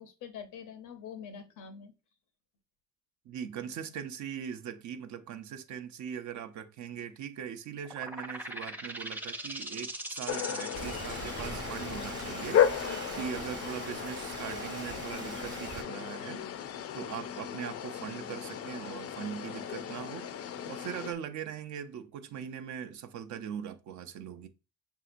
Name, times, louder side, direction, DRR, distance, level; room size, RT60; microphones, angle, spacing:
voice 1, 0.0-1.9 12.8-13.2 16.9-17.1, left 7 dB, 90° left, 0.8 m, -45 dB
voice 2, 3.2-12.9 13.2-16.5 16.9-20.3 20.7-24.5, right 8 dB, 70° right, 0.6 m, -40 dB
sound 1, 7.8-15.2, right 1 dB, 5° right, 0.5 m, -42 dB
sound 2, 10.3-21.1, left 9 dB, 50° left, 0.4 m, -34 dB
Rain, 10.7-15.8, right 4 dB, 40° right, 0.9 m, -42 dB
5.8 x 2.7 x 2.5 m
cardioid pair, 90°, 30 cm